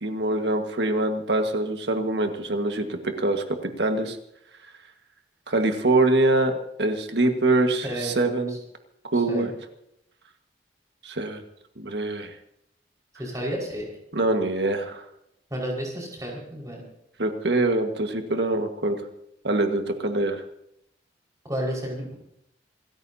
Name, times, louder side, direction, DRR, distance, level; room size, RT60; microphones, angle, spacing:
voice 1, 0.0-4.2 5.5-8.6 9.0-9.5 11.0-11.4 11.8-12.3 14.1-15.0 17.2-19.0 19.4-20.4, right 2 dB, 80° right, 5 dB, 1.7 m, -24 dB
voice 2, 7.8-8.2 8.5-8.6 9.1-9.5 13.2-13.9 15.5-16.8 21.5-22.1, equal, 20° right, -2 dB, 5.1 m, -31 dB
28.0 x 14.5 x 2.8 m, 0.77 s
head